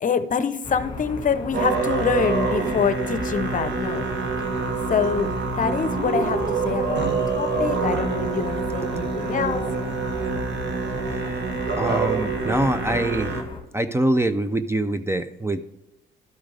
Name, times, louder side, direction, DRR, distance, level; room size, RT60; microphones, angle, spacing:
voice 1, 0.0-4.1 4.9-9.6, left 6 dB, 40° left, 11 dB, 0.7 m, -26 dB
sound 1, 0.6-13.6, left 3 dB, 25° left, 1.6 m, -37 dB
Musical instrument, 1.5-13.4, right 4 dB, 65° right, 1.4 m, -26 dB
voice 2, 11.8-13.4 13.7-15.6, right 1 dB, 15° right, 11 dB, 0.4 m, -24 dB
12.5 x 5.0 x 3.3 m, 0.91 s
cardioid pair, 90°, 20 cm